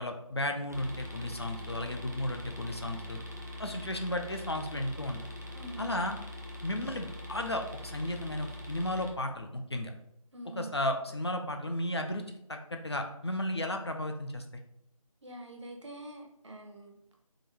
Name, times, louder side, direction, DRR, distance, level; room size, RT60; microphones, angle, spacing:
voice 1, 0.0-3.2 3.6-5.2 5.8-6.2 6.6-9.9 10.6-14.4, left 1 dB, 45° left, 4 dB, 0.4 m, -34 dB
sound 1, 0.7-9.1, left 1 dB, 30° right, 0.4 m, -43 dB
voice 2, 5.5-6.0 10.3-10.7 15.2-16.9, right 1 dB, 55° right, 2 dB, 0.8 m, -44 dB
3.6 x 2.6 x 3.4 m, 0.77 s
figure-of-eight pair, 175°, 18 cm